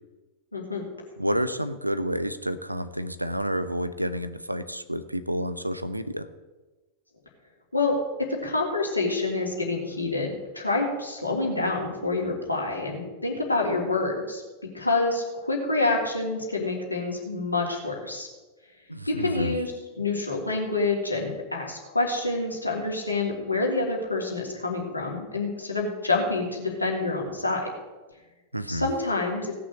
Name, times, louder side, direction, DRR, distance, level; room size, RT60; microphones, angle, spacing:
voice 1, 0.5-0.9 7.7-8.0 8.4-14.4 14.7-18.3 19.2-19.7 20.0-27.6 28.7-29.5, left 3 dB, 85° left, -1 dB, 3.0 m, -27 dB
voice 2, 1.2-6.3 18.9-19.5 28.5-28.9, equal, 90° right, 13 dB, 0.7 m, -29 dB
17.0 x 6.2 x 7.8 m, 1.2 s
figure-of-eight pair, 90°, 0 cm